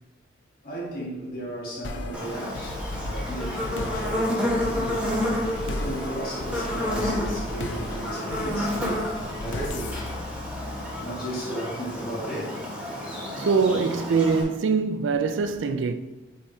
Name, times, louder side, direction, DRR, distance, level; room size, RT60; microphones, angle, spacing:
voice 1, 0.6-5.0 5.6-10.0 10.8-12.5, right 1 dB, 50° left, 1.5 m, -35 dB
sound 1, 1.8-11.3, left 2 dB, 70° left, 0.5 m, -35 dB
Buzz, 2.1-14.4, left 1 dB, 5° right, 1.2 m, -30 dB
voice 2, 13.4-15.9, right 5 dB, 75° right, 0.3 m, -23 dB
7.4 x 4.8 x 2.7 m
head